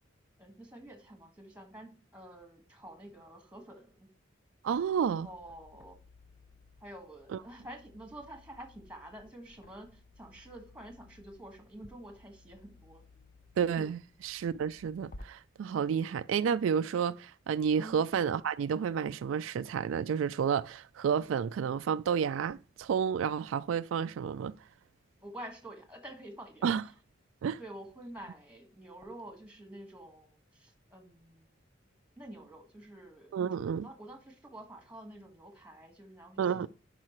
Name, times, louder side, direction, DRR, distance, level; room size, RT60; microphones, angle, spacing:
voice 1, 0.4-4.1 5.2-6.0 6.8-13.0 13.8-13.9 17.8-18.0 25.2-26.7 27.6-31.4 32.2-33.3 33.8-36.7, right 1 dB, 5° right, 1.5 m, -48 dB
sound 1, 4.6-15.2, left 2 dB, 45° left, 0.6 m, -57 dB
voice 2, 4.6-5.3 7.3-7.4 13.6-24.5 26.6-26.8 27.4-27.6 33.3-33.9 36.4-36.7, right 7 dB, 85° right, 0.3 m, -30 dB
11.0 x 4.8 x 3.1 m
head